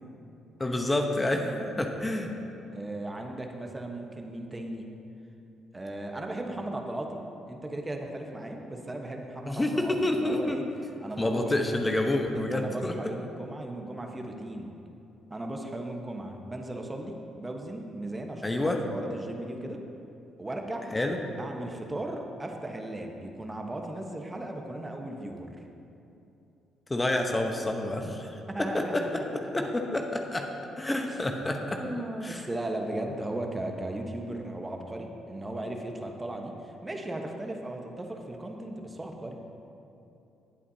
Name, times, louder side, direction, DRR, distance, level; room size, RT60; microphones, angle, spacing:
voice 1, 0.6-2.3 9.5-10.6 11.2-12.9 18.4-18.8 20.9-21.2 26.9-28.2 28.6-29.1 29.3-30.5 30.8-31.8 32.2-32.4, left 1 dB, 20° left, 3 dB, 1.0 m, -28 dB
voice 2, 1.4-1.9 2.7-4.9 5.7-7.2 7.5-10.6 11.0-11.5 12.5-14.7 15.3-19.8 20.4-21.0 21.4-25.6 28.5-29.2 29.6-29.7 31.1-31.2 31.8-39.4, right 1 dB, 20° right, 2 dB, 1.2 m, -37 dB
18.0 x 8.2 x 2.8 m, 2.8 s
hypercardioid pair, 50°, 0 cm